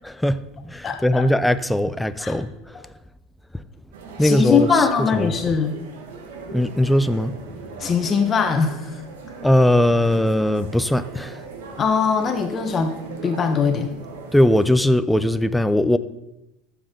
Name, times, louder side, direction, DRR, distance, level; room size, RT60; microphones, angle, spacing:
voice 1, 0.0-2.8 4.2-5.5 6.5-7.4 9.4-11.4 14.3-16.0, left 1 dB, 5° left, 0.5 m, -20 dB
voice 2, 0.8-1.2 2.2-2.4 4.2-5.8 7.8-8.8 11.8-13.0 13.2-13.9, left 6 dB, 30° left, 1.0 m, -21 dB
sound 1, 3.9-14.7, right 4 dB, 90° right, 1.5 m, -38 dB
13.5 x 7.3 x 3.8 m
supercardioid pair, 120°, 0 cm